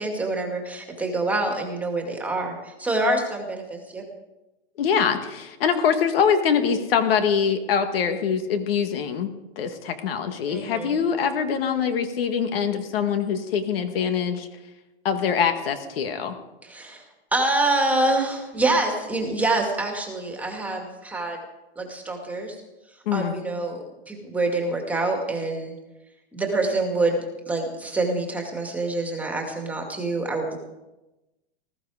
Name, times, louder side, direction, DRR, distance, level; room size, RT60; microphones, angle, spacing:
voice 1, 0.0-4.0 10.5-11.0 16.6-17.0 17.3-21.4 21.8-22.6 23.1-25.7 26.3-30.6, right 2 dB, 5° right, 1 dB, 2.1 m, -26 dB
voice 2, 4.8-9.3 9.6-14.5 15.1-16.4 23.1-23.3, left 7 dB, 60° left, 7 dB, 1.8 m, -23 dB
20.0 x 14.0 x 4.9 m, 1.0 s
hypercardioid pair, 155°, 33 cm